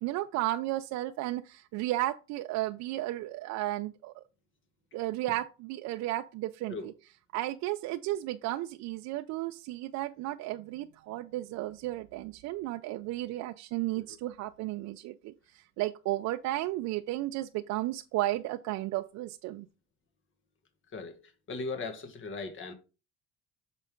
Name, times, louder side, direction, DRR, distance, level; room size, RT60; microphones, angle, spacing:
voice 1, 0.0-4.2 4.9-6.9 7.3-19.7, right 16 dB, 70° right, 0.5 m, -34 dB
voice 2, 21.5-22.7, left 3 dB, 45° left, 1.7 m, -38 dB
6.4 x 5.1 x 3.8 m
supercardioid pair, 100°, 29 cm